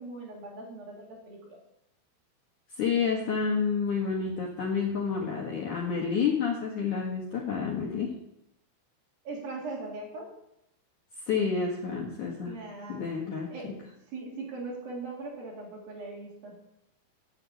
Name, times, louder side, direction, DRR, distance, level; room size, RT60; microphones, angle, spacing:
voice 1, 0.0-1.6 5.8-5.9 9.2-10.3 12.4-13.1 13.5-16.6, right 3 dB, 55° right, -2 dB, 4.0 m, -40 dB
voice 2, 2.8-8.1 11.3-12.5 12.9-13.8, left 6 dB, 55° left, -3 dB, 2.3 m, -29 dB
10.5 x 6.9 x 8.4 m, 0.80 s
omnidirectional pair, 5.3 m